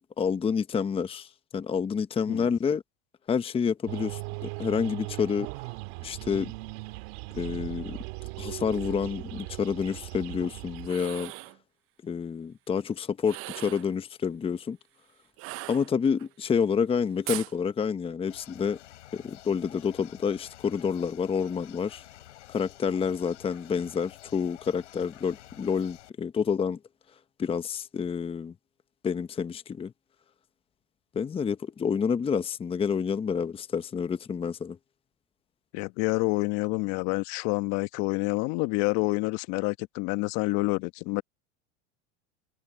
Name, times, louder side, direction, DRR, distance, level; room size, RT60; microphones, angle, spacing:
voice 1, 0.0-2.8 3.3-5.5 6.0-6.5 7.3-8.0 8.4-11.3 12.0-14.8 15.7-18.8 19.1-22.0 22.5-26.8 27.4-28.5 29.0-29.9 31.1-34.8, left 6 dB, 15° left, 0.8 m, -28 dB
sound 1, 3.9-10.9, right 27 dB, 65° right, 2.0 m, -38 dB
sound 2, 10.8-11.6 13.2-13.9 15.4-16.3 17.3-17.5, right 21 dB, 40° right, 0.5 m, -38 dB
sound 3, 18.3-26.1, left 14 dB, 80° left, 6.6 m, -50 dB
voice 2, 35.7-41.2, left 24 dB, 50° left, 1.1 m, -28 dB
supercardioid pair, 115°, 35 cm